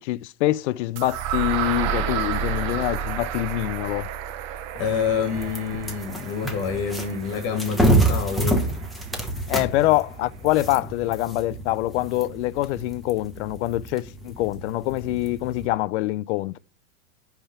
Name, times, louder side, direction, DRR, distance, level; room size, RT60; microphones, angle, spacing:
voice 1, 0.0-4.1 9.5-16.6, left 17 dB, 60° left, 0.5 m, -25 dB
sound 1, 1.0-8.9, right 8 dB, 45° right, 0.7 m, -31 dB
voice 2, 4.7-8.7, left 6 dB, 45° left, 1.5 m, -27 dB
sound 2, 4.8-15.7, right 1 dB, ahead, 1.1 m, -28 dB
10.0 x 3.5 x 5.6 m
supercardioid pair, 135°, 40 cm